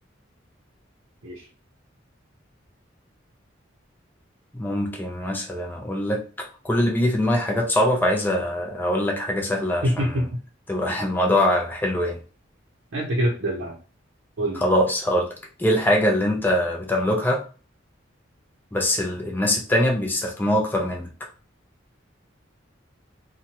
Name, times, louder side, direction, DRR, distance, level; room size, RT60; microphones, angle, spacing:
voice 1, 4.5-10.2 10.7-12.2 14.5-15.3 15.6-17.4 18.7-21.1, left 1 dB, 10° left, 0 dB, 0.4 m, -23 dB
voice 2, 9.8-10.4 12.9-13.8 14.4-14.6, equal, 80° right, -4 dB, 0.7 m, -25 dB
2.9 x 2.2 x 2.9 m, 0.35 s
head